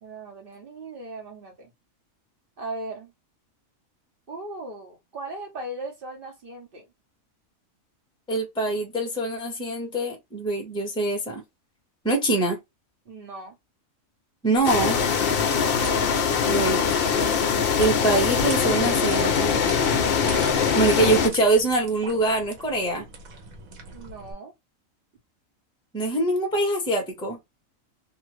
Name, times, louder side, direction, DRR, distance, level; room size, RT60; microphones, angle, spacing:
voice 1, 0.0-1.7 2.6-3.1 4.3-6.9 13.0-13.6 15.5-15.8 23.9-24.5, right 2 dB, 45° right, 1.2 m, -38 dB
voice 2, 8.3-11.4 12.0-12.6 14.4-15.0 16.5-16.9 17.8-19.5 20.7-23.1 25.9-27.4, right 2 dB, 5° left, 0.7 m, -24 dB
sound 1, 14.5-24.3, right 2 dB, 85° right, 1.3 m, -42 dB
sound 2, 14.6-21.3, left 6 dB, 55° left, 0.7 m, -22 dB
2.7 x 2.4 x 3.0 m
omnidirectional pair, 1.4 m